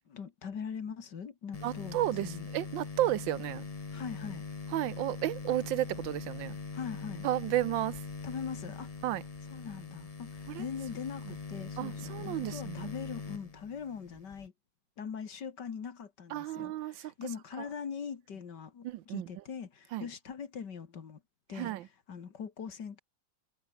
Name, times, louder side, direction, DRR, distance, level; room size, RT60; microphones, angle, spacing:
voice 1, 0.0-2.5 3.9-4.4 6.7-7.3 8.2-8.9 9.5-14.5 15.0-21.2 21.5-23.0, left 6 dB, 60° left, 2.4 m, -42 dB
sound 1, 1.5-14.5, left 4 dB, 30° left, 0.7 m, -42 dB
voice 2, 1.6-3.7 4.7-6.6 7.2-8.0 9.0-9.2 10.5-10.6 11.8-12.9 16.3-17.1 18.8-19.3 19.9-20.0 21.6-21.8, right 14 dB, 75° right, 1.4 m, -32 dB
omnidirectional pair, 2.1 m